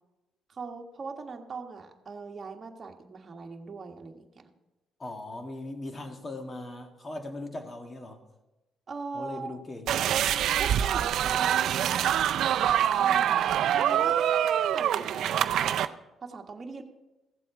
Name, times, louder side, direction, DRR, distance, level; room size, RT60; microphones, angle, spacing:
voice 1, 0.5-4.5 8.9-9.6 10.6-12.3 13.0-14.2 14.7-16.8, right 4 dB, 40° right, 3 dB, 1.4 m, -40 dB
voice 2, 5.0-8.2 9.1-10.2 12.0-12.2, left 2 dB, 30° left, 5 dB, 1.6 m, -39 dB
sound 1, 9.9-15.9, right 10 dB, 75° right, 0.4 m, -25 dB
15.0 x 7.6 x 4.9 m, 1.0 s
cardioid pair, 90°, 0 cm